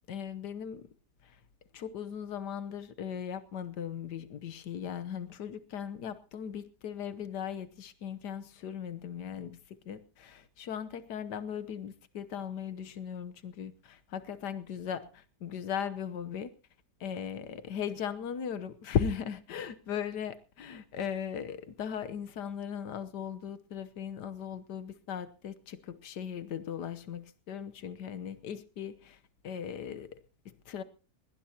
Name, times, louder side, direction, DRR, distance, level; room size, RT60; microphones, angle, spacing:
voice 1, 0.1-0.9 1.2-1.4 1.7-16.5 17.0-29.2 29.4-30.8, left 8 dB, 85° left, 1.6 m, -38 dB
20.0 x 18.5 x 2.9 m
omnidirectional pair, 1.7 m